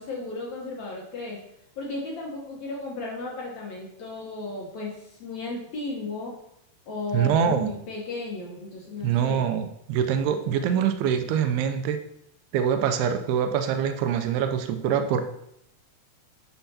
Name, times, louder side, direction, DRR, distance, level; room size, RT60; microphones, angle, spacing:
voice 1, 0.0-1.4 1.8-6.4 6.9-9.5, left 3 dB, 75° left, -3 dB, 1.7 m, -35 dB
voice 2, 7.1-7.7 9.0-12.0 12.5-15.2, right 8 dB, 80° right, 8 dB, 2.5 m, -24 dB
8.9 x 5.7 x 2.8 m, 0.77 s
omnidirectional pair, 4.7 m